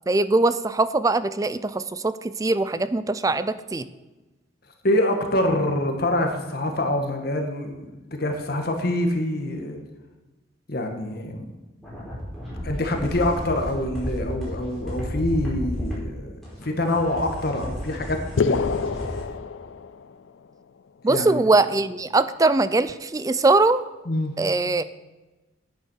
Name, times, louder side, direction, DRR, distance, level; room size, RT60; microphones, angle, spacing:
voice 1, 0.1-3.9 21.0-23.8 24.4-24.8, right 3 dB, 20° right, 14 dB, 0.4 m, -21 dB
voice 2, 4.8-7.8 8.1-9.8 10.7-11.5 12.6-16.3 16.6-18.8 21.1-21.4 24.1-24.3, left 1 dB, 55° left, 4 dB, 1.6 m, -25 dB
sound 1, 11.8-15.9 16.4-19.2, equal, ahead, 4.9 m, -32 dB
sound 2, 18.4-20.3, left 5 dB, 80° left, 0.5 m, -26 dB
9.4 x 9.2 x 6.3 m, 1.1 s
head